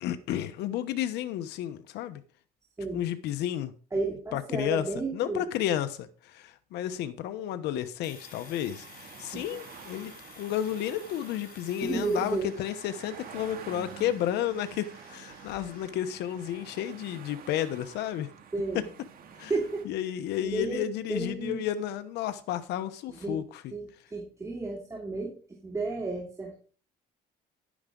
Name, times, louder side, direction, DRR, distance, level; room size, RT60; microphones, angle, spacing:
voice 1, 0.0-2.2 2.9-3.7 4.3-4.8 5.1-8.9 9.2-18.3 18.7-18.8 19.4-19.5 19.8-23.6, left 11 dB, 85° left, 1.0 m, -32 dB
voice 2, 3.9-5.5 9.3-9.4 11.8-12.5 18.5-18.9 19.5-20.0 20.4-21.6 23.1-23.4 23.7-25.4 25.6-26.6, right 3 dB, 20° right, 2.8 m, -32 dB
Domestic sounds home sounds, 8.0-15.9, left 6 dB, 55° left, 4.5 m, -53 dB
sound 1, 8.1-19.8, right 8 dB, 60° right, 2.3 m, -48 dB
11.0 x 9.7 x 3.9 m
cardioid pair, 110°, 17 cm